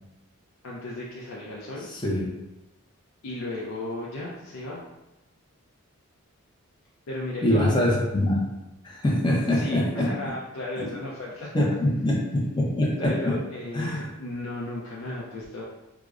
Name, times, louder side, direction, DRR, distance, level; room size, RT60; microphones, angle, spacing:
voice 1, 0.6-1.9 3.2-4.8 7.1-7.8 9.5-11.6 13.0-15.6, left 2 dB, 70° left, -5 dB, 0.5 m, -35 dB
voice 2, 1.9-2.3 7.4-8.4 8.8-10.1 10.8-10.9 11.5-13.3 13.7-14.1, left 1 dB, 20° left, -2 dB, 0.5 m, -24 dB
4.7 x 2.0 x 2.4 m, 0.99 s
head